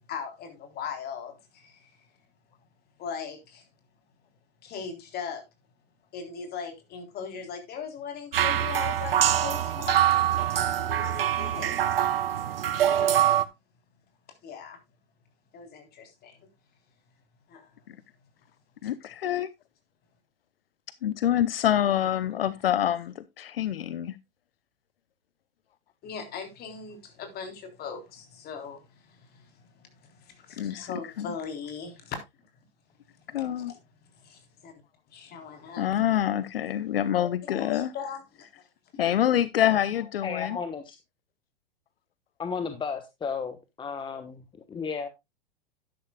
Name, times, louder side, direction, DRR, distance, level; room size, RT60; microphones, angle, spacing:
voice 1, 0.0-2.1 3.0-3.7 4.6-5.4 6.1-10.4 10.9-12.1 12.8-13.3 14.4-14.8 15.5-16.5 17.5-17.7 22.3-22.5 26.0-32.2 33.3-33.8 34.0-34.7 35.1-35.9 37.5-38.7 38.9-39.0, left 6 dB, 35° left, 3.7 m, -39 dB
sound 1, 8.3-13.4, right 11 dB, 80° right, 1.0 m, -24 dB
voice 2, 18.8-19.5 21.0-24.1 30.6-30.9 31.2-31.3 33.3-33.7 35.8-37.9 39.0-40.6, left 11 dB, 75° left, 0.8 m, -26 dB
voice 3, 40.2-41.0 42.4-45.1, left 5 dB, 15° left, 1.2 m, -34 dB
11.5 x 11.0 x 2.3 m
hypercardioid pair, 110°, 29 cm